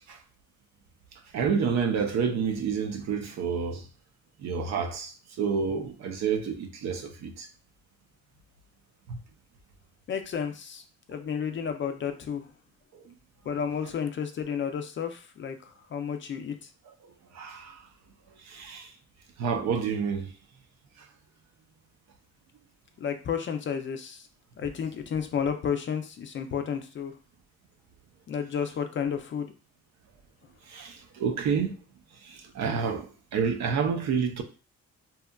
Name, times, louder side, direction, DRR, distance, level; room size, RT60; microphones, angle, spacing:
voice 1, 1.3-3.8 4.4-5.1 5.4-7.5 9.1-9.2 17.4-17.7 18.5-18.8 19.4-20.3 30.7-31.7 32.6-33.1 33.3-34.4, right 6 dB, 65° right, 0.5 m, -28 dB
voice 2, 10.1-10.8 11.1-12.5 13.5-16.5 23.0-24.3 24.6-27.1 28.3-29.5, left 7 dB, 40° left, 0.4 m, -32 dB
2.8 x 2.3 x 2.2 m
cardioid pair, 90°, 30 cm